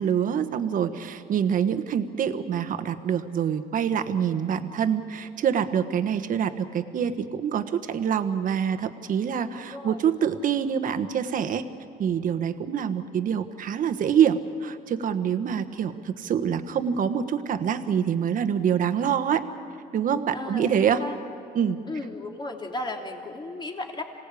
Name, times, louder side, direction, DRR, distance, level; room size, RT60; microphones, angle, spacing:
voice 1, 0.0-11.6 12.0-19.4 19.9-21.0 21.5-21.8, right 8 dB, 55° right, 10 dB, 1.3 m, -25 dB
voice 2, 9.7-10.0 20.3-21.2 21.9-24.0, left 2 dB, 25° left, 2 dB, 2.9 m, -35 dB
26.5 x 18.0 x 8.5 m, 2.5 s
cardioid pair, 110°, 17 cm